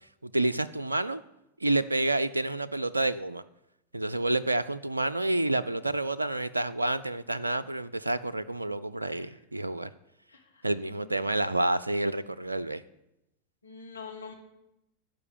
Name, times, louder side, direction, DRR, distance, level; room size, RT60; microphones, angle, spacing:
voice 1, 0.2-1.2 1.6-3.4 3.9-9.9 10.6-12.8, right 2 dB, 80° right, 13 dB, 0.3 m, -29 dB
voice 2, 10.3-11.2 13.6-14.3, left 5 dB, 75° left, 1 dB, 1.8 m, -46 dB
12.0 x 5.2 x 8.9 m, 0.87 s
figure-of-eight pair, 90°, 0 cm